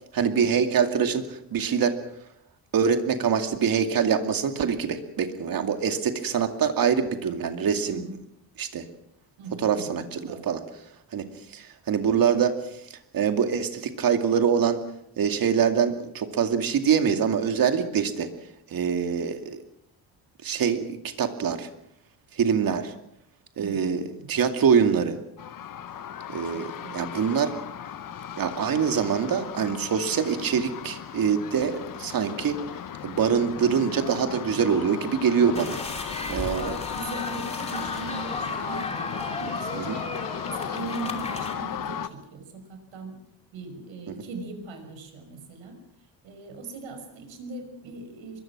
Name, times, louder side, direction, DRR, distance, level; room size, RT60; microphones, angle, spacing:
voice 1, 0.1-2.0 2.7-8.1 8.6-8.9 9.6-10.6 11.1-11.2 11.5-14.8 15.2-18.3 18.7-19.6 20.4-20.8 21.2-21.7 22.3-22.9 23.6-25.2 26.3-27.5 28.4-32.6 33.0-35.8 36.3-36.8 39.7-40.0, right 7 dB, 50° right, 6 dB, 2.4 m, -24 dB
voice 2, 7.9-8.2 9.4-10.0 10.2-10.5 23.6-24.4 26.4-27.0 36.3-40.0 40.5-43.2 43.5-45.8 46.2-48.4, right 3 dB, 85° right, 6 dB, 6.1 m, -40 dB
sound 1, 25.4-42.1, left 9 dB, 45° left, 1.1 m, -36 dB
sound 2, 35.5-41.5, left 2 dB, 15° left, 2.9 m, -34 dB
24.5 x 22.5 x 6.1 m, 0.76 s
cardioid pair, 160°, 45 cm